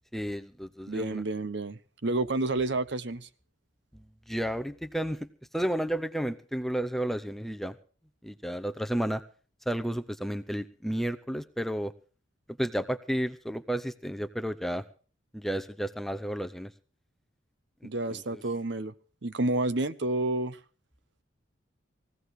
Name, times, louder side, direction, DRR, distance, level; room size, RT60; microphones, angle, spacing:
voice 1, 0.1-1.2 4.3-5.3 5.5-7.7 8.2-9.2 9.7-11.9 12.6-14.8 15.3-16.7 17.8-18.4, right 1 dB, ahead, 0.6 m, -32 dB
voice 2, 0.9-3.3 17.8-18.9 19.2-20.6, right 2 dB, 60° right, 0.9 m, -30 dB
21.5 x 16.5 x 3.2 m
head